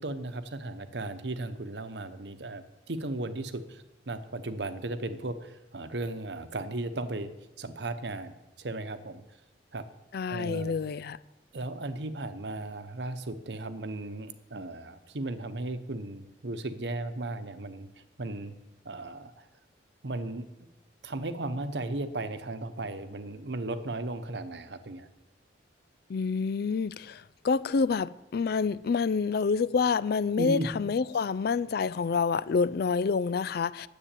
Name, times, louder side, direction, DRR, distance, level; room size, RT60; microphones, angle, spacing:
voice 1, 0.0-7.3 7.6-9.2 9.7-9.9 10.3-10.7 11.5-17.9 18.2-18.5 18.8-19.4 20.0-20.5 21.0-25.1 30.4-30.7, right 2 dB, 70° right, 1.0 m, -36 dB
voice 2, 10.1-11.2 26.1-33.9, left 5 dB, 60° left, 0.4 m, -28 dB
10.0 x 7.9 x 9.0 m
head